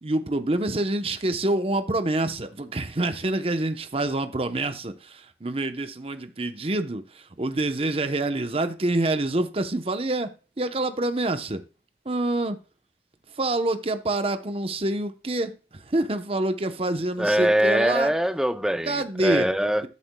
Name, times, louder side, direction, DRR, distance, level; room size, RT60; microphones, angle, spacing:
voice 1, 0.0-11.6 12.0-12.6 13.3-18.1 18.8-19.5, right 2 dB, 35° right, 0.9 m, -27 dB
voice 2, 17.2-18.9 19.2-19.8, equal, 5° right, 0.5 m, -22 dB
13.0 x 7.0 x 2.3 m
head